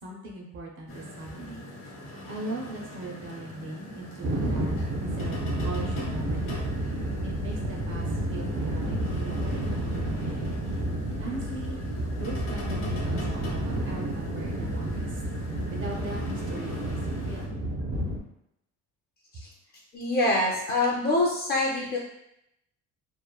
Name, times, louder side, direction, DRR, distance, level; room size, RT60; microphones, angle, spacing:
voice 1, 0.0-1.7 2.3-6.6 7.2-10.5 11.1-11.8 12.2-15.2 15.7-17.5 19.3-19.4, right 2 dB, 40° right, -1 dB, 0.5 m, -39 dB
sound 1, 0.9-17.5, left 1 dB, 90° left, 0.9 m, -43 dB
sound 2, 4.2-18.2, right 1 dB, 90° right, 0.6 m, -30 dB
voice 2, 19.9-22.0, left 2 dB, 30° left, -2 dB, 0.4 m, -25 dB
3.0 x 2.1 x 2.2 m, 0.79 s
cardioid pair, 175°, 32 cm